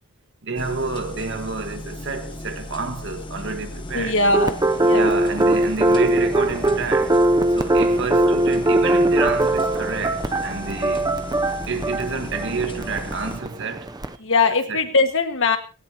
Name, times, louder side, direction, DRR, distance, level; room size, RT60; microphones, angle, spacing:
voice 1, 0.4-4.2 4.9-7.2 7.5-11.1 11.7-13.9 14.7-14.8, right 4 dB, 55° right, 1.6 m, -29 dB
sound 1, 0.6-13.4, left 1 dB, 20° left, 1.1 m, -36 dB
voice 2, 3.9-5.1 12.5-12.7 14.2-15.6, left 3 dB, 60° left, 1.8 m, -21 dB
sound 2, 4.3-14.1, right 1 dB, 15° right, 0.6 m, -20 dB
18.0 x 16.5 x 2.9 m
head